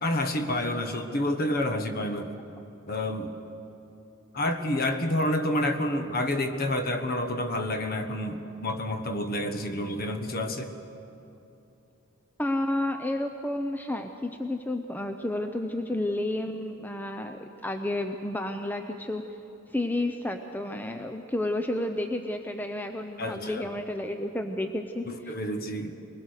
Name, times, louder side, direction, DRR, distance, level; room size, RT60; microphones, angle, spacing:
voice 1, 0.0-2.3 2.9-3.3 4.3-10.7 23.2-23.7 25.1-26.0, left 1 dB, 45° left, 7 dB, 1.3 m, -29 dB
voice 2, 12.4-19.2 19.7-25.3, left 1 dB, 10° left, 6 dB, 0.6 m, -31 dB
22.5 x 20.5 x 6.5 m, 2.9 s
head